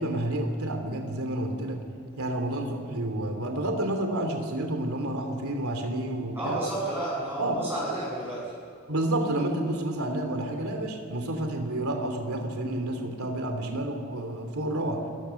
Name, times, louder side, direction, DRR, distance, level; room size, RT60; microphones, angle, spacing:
voice 1, 0.0-1.8 2.2-6.6 7.4-7.6 8.9-15.0, right 1 dB, 85° right, 4 dB, 3.1 m, -30 dB
voice 2, 6.4-8.5, right 1 dB, 10° right, -9 dB, 7.4 m, -32 dB
29.5 x 20.5 x 7.1 m, 2.3 s
head